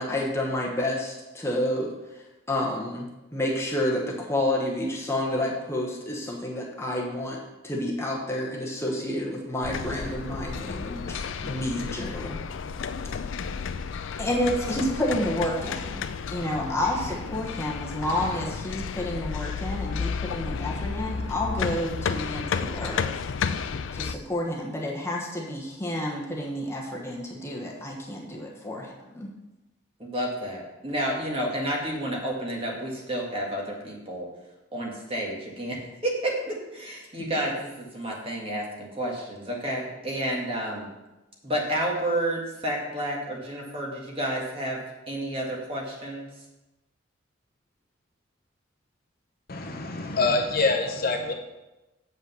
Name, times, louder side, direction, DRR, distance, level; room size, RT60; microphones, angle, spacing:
voice 1, 0.0-12.4 14.2-16.0 16.3-23.2 23.9-29.3, left 1 dB, 15° left, -2 dB, 1.1 m, -30 dB
sound 1, 9.6-24.1, left 5 dB, 65° left, 0.4 m, -32 dB
voice 2, 16.6-17.0 30.0-34.3 34.7-35.8 36.0-40.9 41.4-44.8 45.1-46.3, right 1 dB, 25° right, -2 dB, 1.7 m, -30 dB
voice 3, 49.5-51.3, left 3 dB, 45° left, 3 dB, 0.8 m, -25 dB
7.7 x 5.1 x 6.8 m, 1.0 s
head